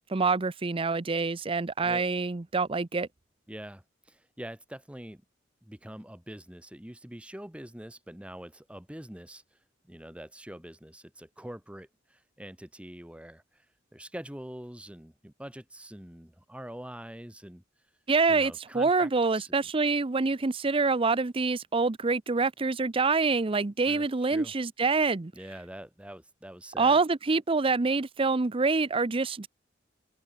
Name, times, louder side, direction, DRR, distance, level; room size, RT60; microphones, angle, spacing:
voice 1, 0.1-3.1 18.1-25.3 26.8-29.5, right 4 dB, 30° right, 0.6 m, -26 dB
voice 2, 3.5-5.2 5.6-9.4 9.9-13.6 13.9-17.6 18.3-19.5 23.8-24.5 25.3-27.0, right 1 dB, 5° right, 1.4 m, -44 dB
head